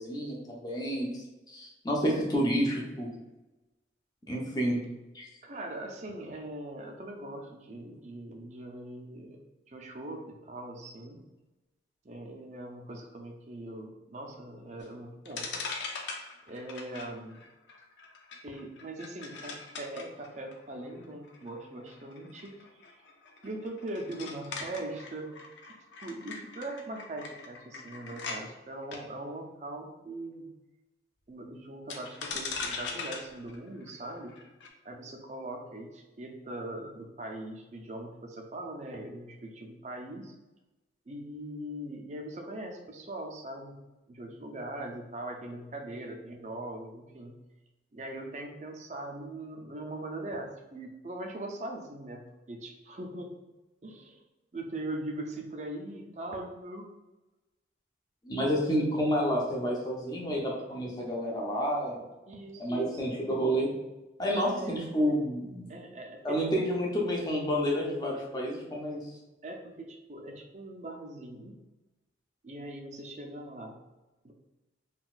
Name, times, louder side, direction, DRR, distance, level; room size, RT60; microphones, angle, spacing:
voice 1, 0.0-3.1 4.3-4.8 5.1-5.3 58.2-62.0 62.6-63.7 64.2-65.7 66.2-69.1, equal, 20° left, -2 dB, 0.6 m, -29 dB
voice 2, 5.4-9.4 9.7-11.2 12.0-15.6 16.5-17.4 18.4-22.7 23.4-25.3 26.0-30.5 31.3-34.4 34.8-40.4 41.1-43.7 44.1-47.4 47.9-53.3 53.8-54.2 54.5-56.9 58.7-59.1 62.3-63.1 64.3-64.8 65.7-66.7 69.4-71.5 72.4-73.7 74.2-74.3, right 1 dB, 40° right, 2 dB, 0.4 m, -41 dB
sound 1, 14.8-14.9 15.2-28.4 28.8-29.0 31.9-34.7, left 4 dB, 80° left, 0.5 m, -41 dB
3.8 x 2.3 x 2.4 m, 1.1 s
head